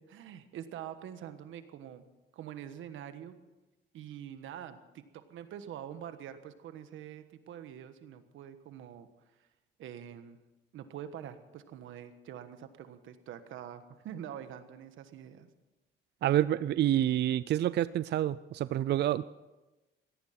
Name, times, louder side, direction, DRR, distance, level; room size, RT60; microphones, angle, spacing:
voice 1, 0.0-2.1 2.3-3.4 3.9-9.1 9.4-9.5 9.8-10.4 10.7-15.5, right 10 dB, 85° right, 10 dB, 1.4 m, -45 dB
voice 2, 16.2-19.2, right 12 dB, 60° right, 16 dB, 0.4 m, -28 dB
17.5 x 14.0 x 5.9 m, 1.1 s
cardioid pair, 90°, 20 cm